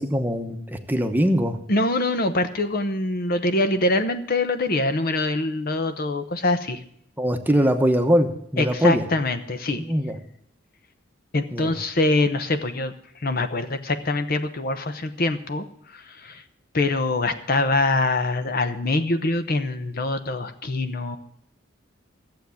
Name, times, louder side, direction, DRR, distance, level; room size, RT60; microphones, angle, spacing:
voice 1, 0.0-1.6 7.2-9.0 9.7-10.2 11.5-11.7, equal, 10° right, 5 dB, 1.0 m, -22 dB
voice 2, 1.7-6.8 8.6-9.8 11.3-12.9 13.2-15.6 15.9-16.4 16.7-21.2, left 2 dB, 50° left, 9 dB, 0.9 m, -24 dB
14.5 x 7.8 x 7.1 m, 0.69 s
head